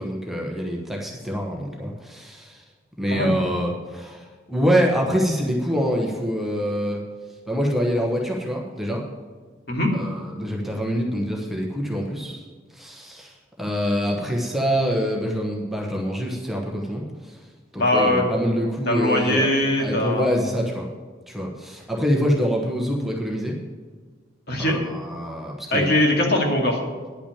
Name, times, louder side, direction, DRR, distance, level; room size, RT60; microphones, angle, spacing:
voice 1, 0.0-2.6 3.0-7.0 7.5-9.0 9.9-12.4 12.7-17.4 17.7-19.5 19.8-20.9 21.3-23.6 24.6-25.9, equal, ahead, -1 dB, 1.1 m, -25 dB
voice 2, 17.8-18.2 18.9-20.3 24.5-24.8 25.7-26.8, left 1 dB, 50° left, 0 dB, 2.1 m, -21 dB
10.0 x 6.0 x 8.6 m, 1.5 s
head